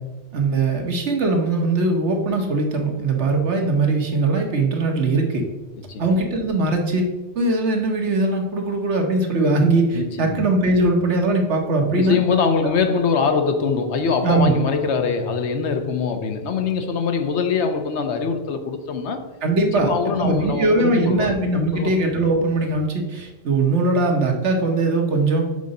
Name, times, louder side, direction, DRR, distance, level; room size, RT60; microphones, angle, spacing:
voice 1, 0.3-5.4 6.0-7.0 7.3-12.2 12.6-12.7 14.2-14.6 19.4-25.4, right 2 dB, 75° right, 1.4 m, -20 dB
voice 2, 9.9-10.4 11.9-19.2 19.7-21.3 21.7-21.9, left 5 dB, 75° left, 1.0 m, -23 dB
6.8 x 3.8 x 5.3 m
omnidirectional pair, 1.2 m